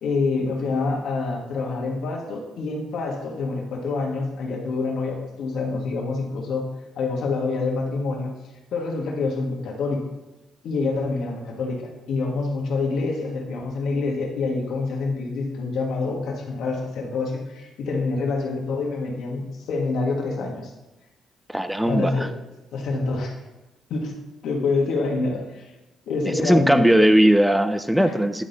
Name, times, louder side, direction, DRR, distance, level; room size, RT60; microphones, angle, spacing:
voice 1, 0.0-6.7 6.9-8.3 8.7-10.0 10.6-11.8 12.1-20.7 21.9-22.3 22.7-23.3 23.9-24.1 24.4-25.7 26.1-26.9 28.0-28.1, left 3 dB, 75° left, 1 dB, 1.4 m, -26 dB
voice 2, 21.5-22.3 26.2-28.4, right 1 dB, 5° right, 10 dB, 0.4 m, -19 dB
9.7 x 4.1 x 3.9 m, 1.0 s
cardioid pair, 90°, 0 cm